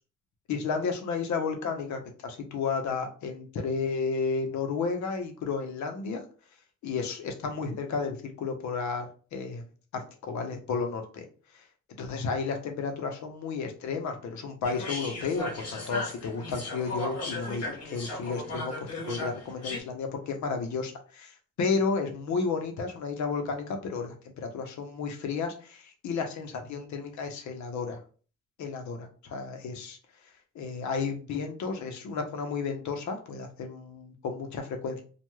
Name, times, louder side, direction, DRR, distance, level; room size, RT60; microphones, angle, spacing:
voice 1, 0.5-6.2 6.8-9.6 9.9-11.2 11.5-11.6 12.0-28.0 28.6-30.0 30.5-35.0, left 5 dB, 70° left, 5 dB, 0.7 m, -32 dB
sound 1, 14.6-19.8, left 2 dB, 55° left, 1.1 m, -36 dB
2.3 x 2.2 x 3.0 m, 0.39 s
cardioid pair, 90°, 30 cm